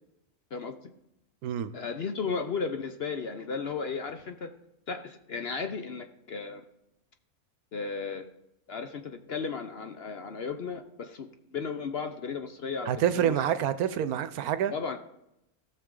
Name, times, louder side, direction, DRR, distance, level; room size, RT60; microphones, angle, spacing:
voice 1, 0.5-0.9 1.7-4.5 4.9-6.6 7.7-8.3 8.7-11.3 11.5-13.4 14.7-15.0, left 5 dB, 55° left, 6 dB, 0.8 m, -35 dB
voice 2, 12.9-14.7, right 9 dB, 80° right, 13 dB, 1.1 m, -27 dB
17.5 x 6.7 x 3.8 m, 0.85 s
omnidirectional pair, 1.6 m